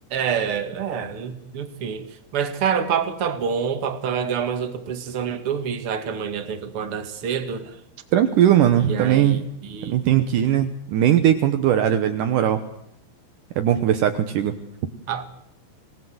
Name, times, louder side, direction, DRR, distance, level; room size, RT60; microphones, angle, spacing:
voice 1, 0.1-2.1 2.3-7.8 8.8-10.0 15.1-15.3, right 7 dB, 45° right, 2.0 m, -27 dB
voice 2, 8.1-9.4 9.9-12.6 13.6-14.5, right 10 dB, 80° right, 1.9 m, -19 dB
26.0 x 18.5 x 7.9 m
omnidirectional pair, 5.3 m